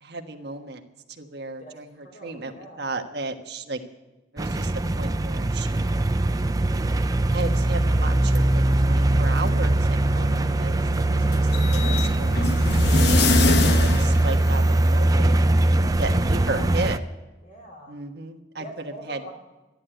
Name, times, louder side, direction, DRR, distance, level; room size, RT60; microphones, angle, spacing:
voice 1, 0.0-0.8 1.2-3.8 4.3-6.0 7.3-11.4 11.7-12.3 12.8-17.0 17.9-19.2, right 2 dB, 60° right, 5 dB, 1.4 m, -34 dB
voice 2, 1.6-2.9 13.5-14.2 15.8-17.0 17.4-17.9 18.6-19.3, equal, 40° left, -1 dB, 3.9 m, -43 dB
sound 1, 4.4-17.0, right 1 dB, 20° right, 0.4 m, -21 dB
sound 2, 10.1-15.1, left 3 dB, 60° left, 1.0 m, -25 dB
13.0 x 11.0 x 9.1 m, 1.1 s
head